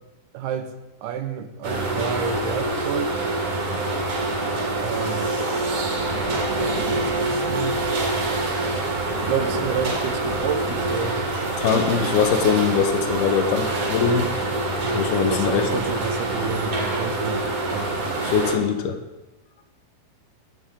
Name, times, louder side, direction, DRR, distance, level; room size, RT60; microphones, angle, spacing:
voice 1, 0.3-0.7 1.0-3.1 4.8-5.3 6.8-7.8 9.3-11.3 14.8-18.0, right 8 dB, 80° right, 7 dB, 3.0 m, -30 dB
sound 1, 1.6-18.6, right 2 dB, 45° right, 2.7 m, -25 dB
voice 2, 11.6-14.3 14.9-15.7 18.2-19.0, left 7 dB, 75° left, 6 dB, 3.0 m, -22 dB
24.0 x 10.0 x 3.8 m, 1.1 s
omnidirectional pair, 4.5 m